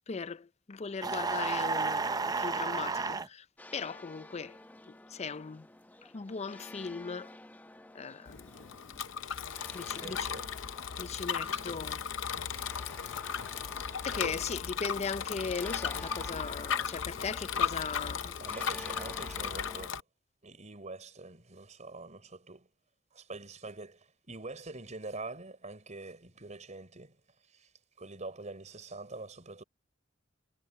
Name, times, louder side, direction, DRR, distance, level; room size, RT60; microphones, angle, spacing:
voice 1, 0.1-3.5 3.7-4.6 4.9-5.7 6.0-7.4 7.9-8.5 9.7-10.3 11.0-12.3 14.0-18.4, left 5 dB, 35° left, 0.5 m, -38 dB
sound 1, 1.0-3.3, right 4 dB, 20° right, 0.5 m, -31 dB
sound 2, 3.6-19.9, left 1 dB, 10° left, 0.9 m, -51 dB
Bicycle, 8.3-20.0, left 7 dB, 70° left, 0.7 m, -36 dB
voice 2, 9.9-10.5 11.4-11.8 13.3-14.1 18.4-20.0 20.4-22.7 23.1-27.2 27.5-27.7 28.0-29.6, right 3 dB, 40° right, 4.4 m, -45 dB
head